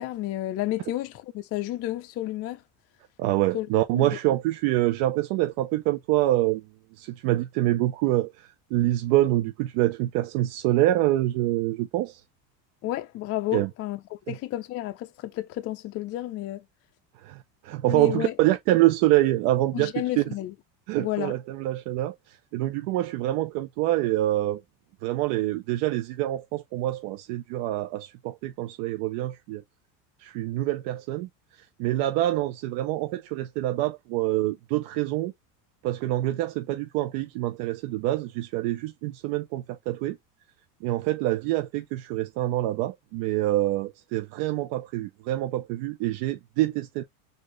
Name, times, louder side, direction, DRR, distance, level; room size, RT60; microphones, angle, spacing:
voice 1, 0.0-2.6 3.5-3.7 3.9-4.2 12.8-16.6 17.9-18.3 19.7-20.5 21.0-21.3, left 15 dB, 35° left, 0.4 m, -31 dB
voice 2, 3.2-6.6 7.0-12.2 13.5-13.7 14.3-14.4 17.2-17.4 17.6-20.2 20.9-22.1 22.5-24.6 25.0-29.6 30.2-31.3 31.8-35.3 35.8-40.2 40.8-47.0, right 15 dB, 65° right, 0.7 m, -26 dB
4.4 x 2.6 x 3.0 m
supercardioid pair, 120°, 49 cm